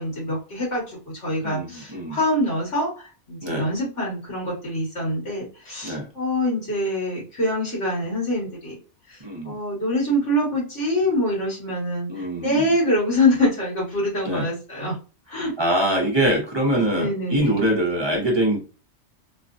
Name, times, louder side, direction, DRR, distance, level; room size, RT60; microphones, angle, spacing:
voice 1, 0.0-2.9 3.3-8.7 9.4-14.9 15.3-15.5 16.9-17.6, left 1 dB, 90° left, -5 dB, 2.4 m, -25 dB
voice 2, 1.4-2.2 3.4-3.7 5.8-6.1 9.2-9.6 12.1-12.7 14.2-14.5 15.6-18.8, right 1 dB, 25° right, -1 dB, 0.7 m, -24 dB
4.1 x 2.1 x 2.5 m, 0.33 s
omnidirectional pair, 1.2 m